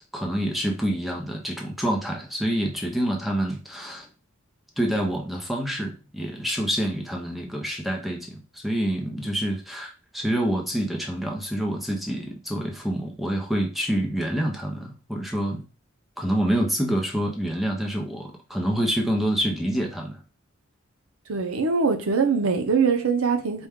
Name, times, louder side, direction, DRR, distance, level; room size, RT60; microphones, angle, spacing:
voice 1, 0.1-4.1 4.8-15.6 16.2-20.2, equal, ahead, 0.6 m, -27 dB
voice 2, 21.3-23.7, right 5 dB, 90° right, 0.7 m, -22 dB
4.3 x 2.3 x 3.5 m
head